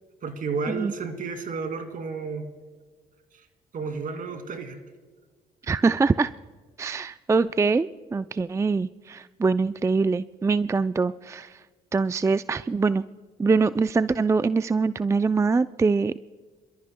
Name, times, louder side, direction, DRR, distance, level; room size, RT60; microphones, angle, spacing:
voice 1, 0.2-2.5 3.7-4.8, right 4 dB, 55° right, 7 dB, 2.4 m, -32 dB
voice 2, 5.7-6.3 6.8-11.5 11.9-13.0 13.4-16.1, right 4 dB, 15° right, 14 dB, 0.4 m, -23 dB
28.0 x 14.0 x 2.2 m, 1.4 s
supercardioid pair, 70°, 17 cm